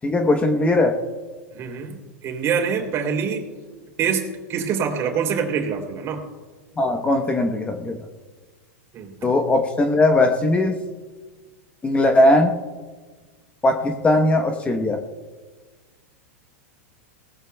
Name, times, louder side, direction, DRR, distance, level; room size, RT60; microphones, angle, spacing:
voice 1, 0.0-1.0 6.8-8.0 9.2-10.8 11.8-12.5 13.6-15.0, left 2 dB, 15° left, 5 dB, 1.0 m, -19 dB
voice 2, 1.5-2.0 2.2-3.5 4.0-6.2 8.9-9.3, right 6 dB, 35° right, 3 dB, 3.1 m, -25 dB
20.0 x 17.5 x 2.3 m, 1.4 s
hypercardioid pair, 125°, 8 cm